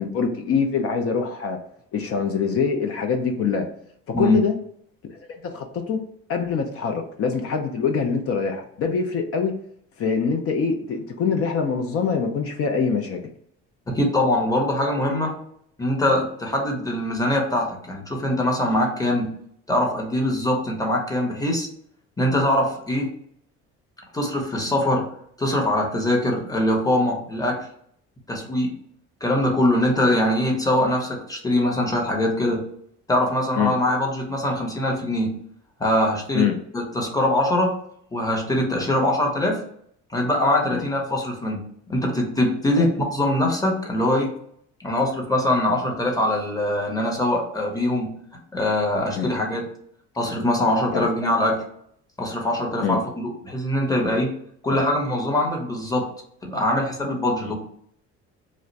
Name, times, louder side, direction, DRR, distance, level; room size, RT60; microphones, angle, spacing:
voice 1, 0.0-1.6 1.9-3.7 4.2-4.5 5.1-6.0 6.3-9.5 10.0-13.2 33.6-33.8 36.3-36.6 40.7-40.8 42.8-42.9 49.2-49.3 50.9-51.1 52.8-53.0 54.7-54.8 57.4-57.5, left 6 dB, 50° left, 5 dB, 0.5 m, -24 dB
voice 2, 13.9-15.4 15.8-19.3 19.7-21.7 22.2-23.1 24.1-25.1 25.4-27.7 28.3-28.7 29.2-32.6 33.1-35.3 35.8-36.5 36.7-37.8 38.1-39.6 40.1-44.3 44.8-48.1 48.5-49.7 50.2-51.6 52.2-54.3 54.6-56.1 56.4-57.6, left 1 dB, 10° left, 0 dB, 0.8 m, -23 dB
2.4 x 2.1 x 3.9 m, 0.67 s
cardioid pair, 95°, 30 cm